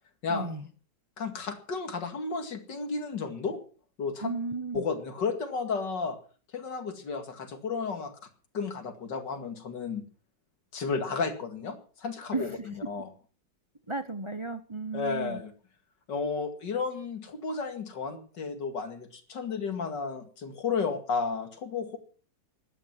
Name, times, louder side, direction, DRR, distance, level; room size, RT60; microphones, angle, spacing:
voice 1, 0.3-0.6 4.2-4.8 12.3-12.7 13.9-15.4, right 3 dB, 25° right, 10 dB, 0.7 m, -34 dB
voice 2, 1.2-3.6 4.0-4.3 4.7-6.2 6.5-8.1 8.5-10.0 10.7-13.1 14.9-15.5 16.1-22.0, left 5 dB, 75° left, 7 dB, 2.8 m, -33 dB
17.0 x 12.0 x 5.9 m, 0.40 s
omnidirectional pair, 2.0 m